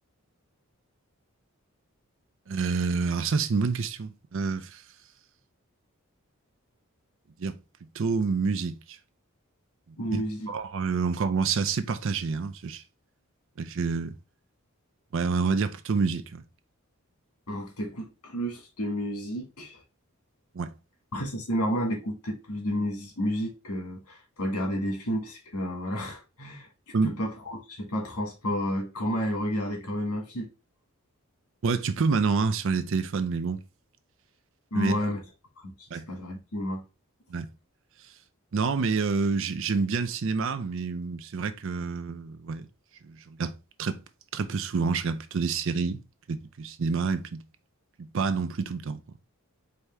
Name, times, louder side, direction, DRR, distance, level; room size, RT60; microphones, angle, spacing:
voice 1, 2.5-4.8 7.4-7.6 7.9-9.0 10.1-10.2 10.5-12.8 13.6-14.1 15.1-16.4 20.5-20.7 26.9-27.2 31.6-33.6 34.7-35.0 35.9-36.1 37.3-37.5 38.5-42.7 43.0-43.5 43.8-44.0 44.3-46.0 46.3-47.4 48.0-49.0, right 4 dB, 55° right, 0.5 m, -28 dB
voice 2, 10.0-10.5 17.5-19.8 21.1-26.7 27.0-30.5 34.7-35.2 35.6-35.7 36.1-36.8, equal, 90° left, 1.8 m, -31 dB
4.8 x 2.8 x 3.4 m
head